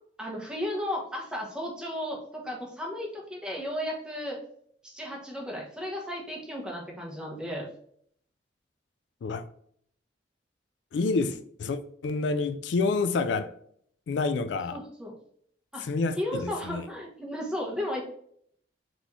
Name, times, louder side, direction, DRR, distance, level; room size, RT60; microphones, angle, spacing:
voice 1, 0.2-4.4 4.8-7.7 14.7-15.2 15.7-15.9 16.2-18.0, left 1 dB, 5° right, 0.9 m, -34 dB
voice 2, 10.9-13.5 14.1-14.8 15.8-16.8, left 3 dB, 75° left, 0.3 m, -28 dB
4.1 x 3.0 x 3.5 m
head